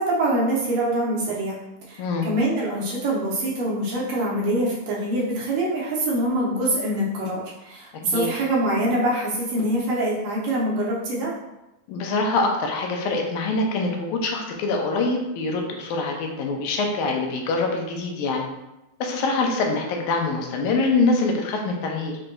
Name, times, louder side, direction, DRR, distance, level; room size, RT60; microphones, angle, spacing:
voice 1, 0.0-1.6 1.9-11.3, right 1 dB, 70° right, -5 dB, 1.8 m, -24 dB
voice 2, 11.9-18.5 19.0-22.2, left 3 dB, 85° left, 1 dB, 2.0 m, -24 dB
5.9 x 2.2 x 2.5 m, 0.94 s
omnidirectional pair, 3.5 m